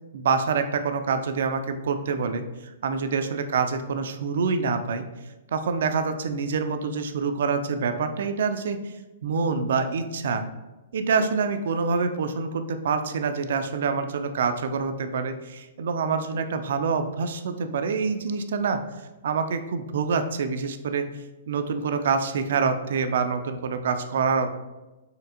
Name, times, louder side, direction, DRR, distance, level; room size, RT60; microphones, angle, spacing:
voice 1, 0.1-5.1 5.5-8.9 9.2-10.4 10.9-18.8 19.2-21.1 21.5-24.6, right 5 dB, 60° right, 8 dB, 0.3 m, -26 dB
4.3 x 3.2 x 2.5 m, 1.1 s
figure-of-eight pair, 110°, 0 cm